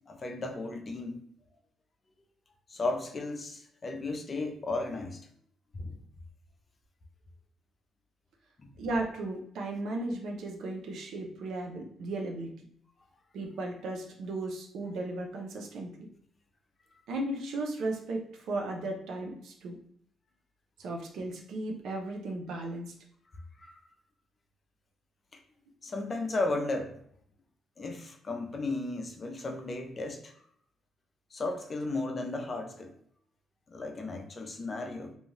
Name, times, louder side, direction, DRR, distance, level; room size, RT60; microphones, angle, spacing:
voice 1, 0.1-1.2 2.7-5.3 5.7-6.0 8.6-8.7 23.6-23.8 25.8-27.0 27.8-30.3 31.3-32.9 33.7-35.1, left 2 dB, 35° left, 5 dB, 0.5 m, -35 dB
voice 2, 8.8-12.7 13.3-16.1 17.1-19.8 20.8-22.9, right 2 dB, 75° right, 1 dB, 0.7 m, -35 dB
2.5 x 2.3 x 3.2 m, 0.67 s
cardioid pair, 90°, 0 cm